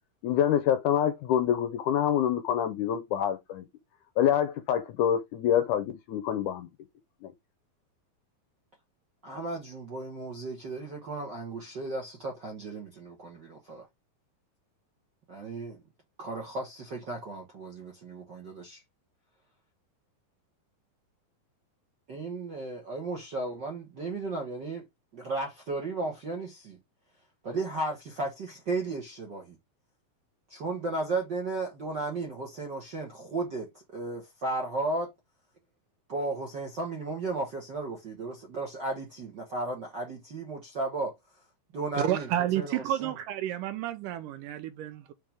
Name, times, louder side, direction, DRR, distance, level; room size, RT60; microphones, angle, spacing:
voice 1, 0.2-3.6 4.2-6.7 7.2-7.3, left 10 dB, 80° left, 1.8 m, -26 dB
voice 2, 9.2-13.9 15.3-15.8 16.2-18.8 22.1-24.8 25.1-26.8 27.4-29.6 30.5-35.1 36.1-41.1 41.7-43.1, right 2 dB, 60° right, 1.1 m, -35 dB
voice 3, 42.0-45.1, right 12 dB, 80° right, 2.1 m, -30 dB
5.7 x 5.1 x 3.4 m
omnidirectional pair, 4.1 m